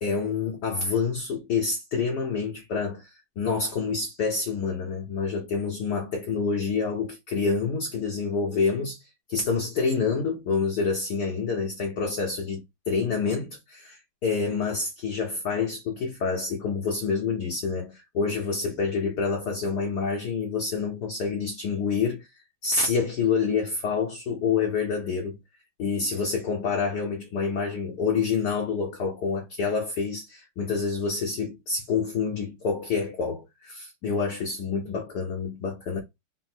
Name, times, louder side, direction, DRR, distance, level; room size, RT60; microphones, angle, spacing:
voice 1, 0.0-9.0 9.3-22.3 22.6-25.4 25.8-36.0, left 5 dB, 65° left, 1.1 m, -27 dB
4.1 x 2.0 x 4.2 m
omnidirectional pair, 2.4 m